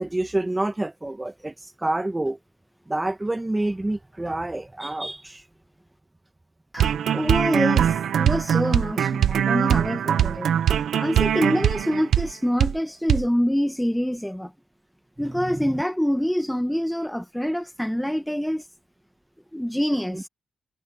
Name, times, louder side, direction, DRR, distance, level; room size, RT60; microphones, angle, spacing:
voice 1, 0.0-2.4 2.9-5.4 15.2-15.7 20.1-20.2, right 1 dB, 15° right, 1.8 m, -28 dB
voice 2, 6.7-14.5 15.2-18.6 19.5-20.3, equal, 5° left, 1.7 m, -26 dB
sound 1, 6.8-12.3 12.6-12.8 13.1-13.2, right 9 dB, 80° right, 1.1 m, -22 dB
cardioid pair, 70°, 0 cm